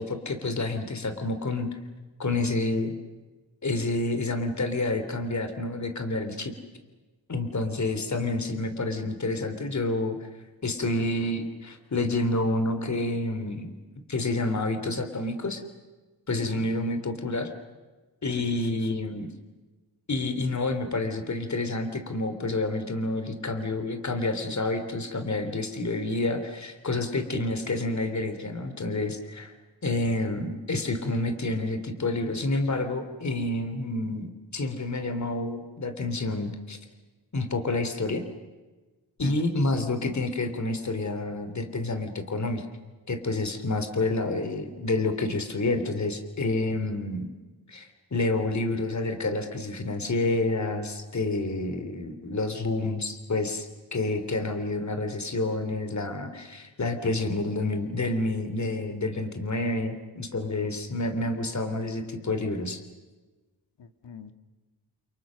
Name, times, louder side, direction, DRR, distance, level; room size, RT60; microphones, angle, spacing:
voice 1, 0.0-1.7 2.2-2.9 3.6-6.5 7.3-10.2 10.6-13.7 14.1-15.6 16.3-17.5 18.2-19.3 20.1-29.5 29.8-36.8 37.3-38.2 39.2-42.7 43.1-47.3 47.7-62.8, left 2 dB, 40° left, 8 dB, 3.4 m, -29 dB
voice 2, 18.3-18.9 39.2-39.5 63.8-64.3, left 6 dB, 80° left, 9 dB, 2.1 m, -40 dB
30.0 x 28.5 x 6.5 m, 1.2 s
wide cardioid pair, 100°, 42 cm